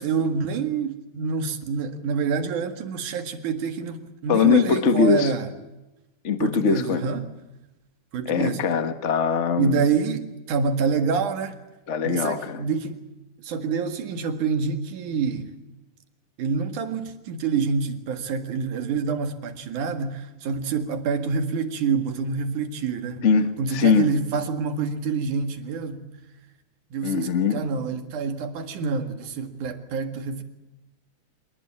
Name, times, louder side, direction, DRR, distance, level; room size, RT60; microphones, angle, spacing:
voice 1, 0.0-5.5 6.4-7.3 8.1-8.6 9.6-11.6 12.0-13.0 13.4-15.5 16.4-23.3 23.6-26.1 26.9-30.4, right 5 dB, 70° right, 3.3 m, -27 dB
voice 2, 4.3-5.3 6.2-7.0 8.3-9.8 11.9-12.6 23.2-24.1 27.0-27.6, left 6 dB, 55° left, 0.8 m, -21 dB
26.0 x 19.5 x 8.8 m
omnidirectional pair, 3.7 m